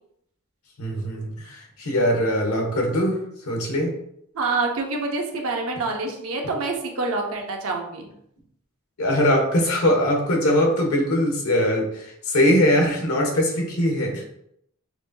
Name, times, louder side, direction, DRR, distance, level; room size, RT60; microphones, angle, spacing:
voice 1, 0.8-3.9 9.0-14.2, left 1 dB, 90° left, 1 dB, 1.1 m, -21 dB
voice 2, 4.3-8.1, right 3 dB, 75° right, 1 dB, 0.8 m, -26 dB
6.0 x 2.6 x 2.2 m, 0.74 s
head